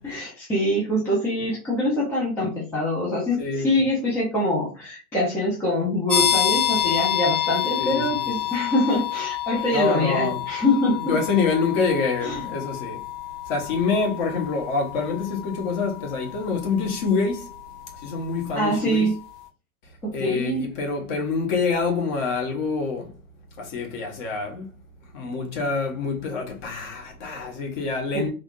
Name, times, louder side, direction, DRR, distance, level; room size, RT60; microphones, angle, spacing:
voice 1, 0.0-11.2 12.2-12.5 18.5-19.1 20.0-20.7 28.1-28.3, left 1 dB, 5° left, 0.5 m, -24 dB
voice 2, 3.4-3.8 7.8-8.3 9.7-10.4 11.0-13.0 13.5-17.5 18.0-19.1 20.1-23.1 23.6-24.7 25.1-28.3, left 4 dB, 30° left, 1.0 m, -26 dB
sound 1, 6.1-18.6, left 11 dB, 85° left, 1.1 m, -28 dB
3.5 x 2.4 x 2.3 m
figure-of-eight pair, 115°, 45 cm